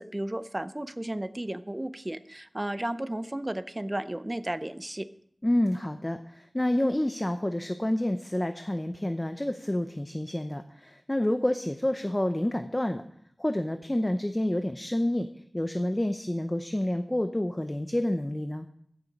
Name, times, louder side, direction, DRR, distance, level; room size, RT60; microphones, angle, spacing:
voice 1, 0.0-5.1, right 1 dB, 25° right, 13 dB, 0.6 m, -33 dB
voice 2, 5.4-13.0 13.4-15.3 15.5-18.7, left 1 dB, 20° left, 8 dB, 0.6 m, -28 dB
15.0 x 6.9 x 5.2 m, 0.69 s
wide cardioid pair, 65°, 0 cm